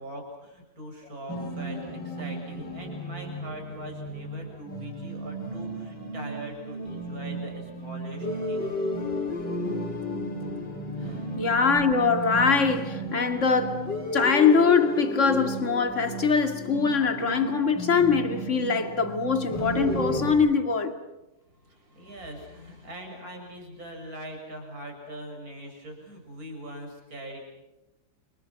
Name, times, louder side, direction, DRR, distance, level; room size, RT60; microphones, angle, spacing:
voice 1, 0.0-8.8 11.0-11.3 21.5-27.4, right 1 dB, 45° right, 6.7 m, -41 dB
sound 1, 1.3-20.3, equal, 60° left, 5.0 m, -33 dB
voice 2, 11.4-21.0, left 5 dB, 40° left, 2.5 m, -23 dB
29.0 x 29.0 x 6.0 m
omnidirectional pair, 2.1 m